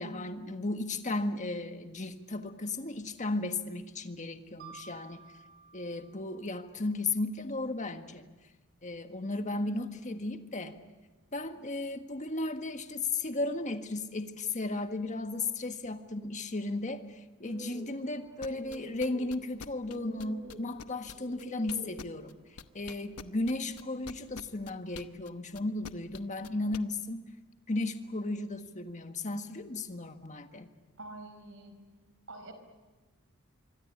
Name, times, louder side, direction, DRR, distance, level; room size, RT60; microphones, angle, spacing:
voice 1, 0.0-5.3 5.7-8.3 8.8-10.8 11.3-22.3 22.7-27.2 27.7-30.7, left 2 dB, 35° left, 7 dB, 1.6 m, -35 dB
Mallet percussion, 4.6-7.4, right 6 dB, 40° right, 3.3 m, -54 dB
sound 1, 17.4-23.6, right 2 dB, 20° right, 2.2 m, -50 dB
sound 2, 18.4-22.3 22.6-26.8, left 5 dB, 85° left, 0.9 m, -45 dB
voice 2, 31.0-31.8 32.3-32.5, right 2 dB, 60° right, 7 dB, 4.8 m, -46 dB
25.5 x 24.0 x 8.7 m, 1.2 s
head